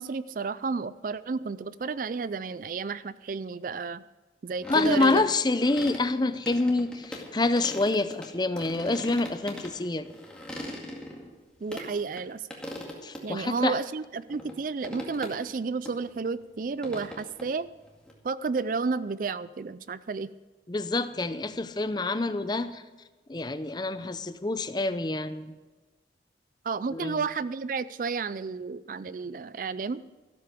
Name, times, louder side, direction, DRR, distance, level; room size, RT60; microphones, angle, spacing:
voice 1, 0.0-4.0 4.4-5.2 11.6-12.5 13.2-17.7 18.2-20.3 26.6-30.0, right 4 dB, 50° right, 17 dB, 0.4 m, -32 dB
sound 1, 4.6-6.0 6.5-8.3 8.6-11.9 12.2-12.3 12.5-13.2 13.6-13.7 14.3-14.6 14.8-15.6 15.8-15.9 16.2-18.1, equal, 5° left, 2.0 m, -40 dB
voice 2, 4.7-10.1 13.0-13.8 20.7-22.8 23.3-25.5 26.9-27.2, left 2 dB, 25° left, 12 dB, 0.6 m, -27 dB
13.5 x 13.0 x 5.1 m, 1.2 s
head